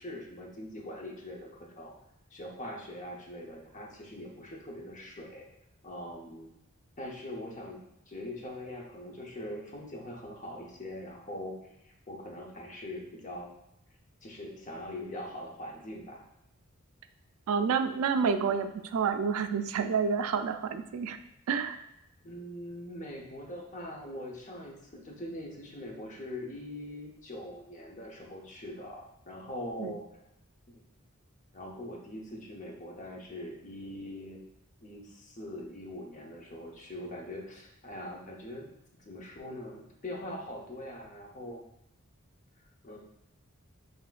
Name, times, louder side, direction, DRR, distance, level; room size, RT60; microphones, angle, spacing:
voice 1, 0.0-1.9 2.3-5.4 5.8-6.5 7.0-7.8 8.1-11.6 11.8-13.5 14.2-16.3 22.2-30.0 30.7-30.8 31.5-34.4 34.8-38.7 39.1-41.6 42.8-43.0, left 1 dB, 35° left, -1 dB, 0.8 m, -42 dB
voice 2, 17.5-21.2 21.5-21.8 29.8-29.9, right 6 dB, 75° right, 9 dB, 0.3 m, -29 dB
5.8 x 2.9 x 2.5 m, 0.83 s
head